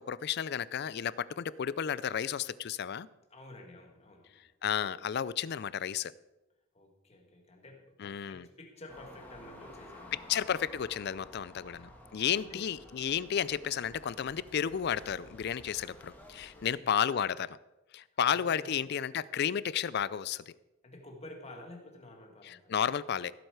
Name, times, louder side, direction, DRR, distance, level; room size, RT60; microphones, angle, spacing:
voice 1, 0.0-3.1 4.6-6.1 8.0-8.5 10.3-17.6 17.9-20.5 22.4-23.3, left 8 dB, 50° left, 0.4 m, -32 dB
voice 2, 3.3-4.5 6.7-10.5 11.6-11.9 12.4-12.8 16.5-17.1 18.3-18.9 20.8-22.9, left 1 dB, 30° left, 1.6 m, -51 dB
sound 1, 8.9-16.7, left 1 dB, 10° left, 1.5 m, -53 dB
16.0 x 7.9 x 4.7 m
head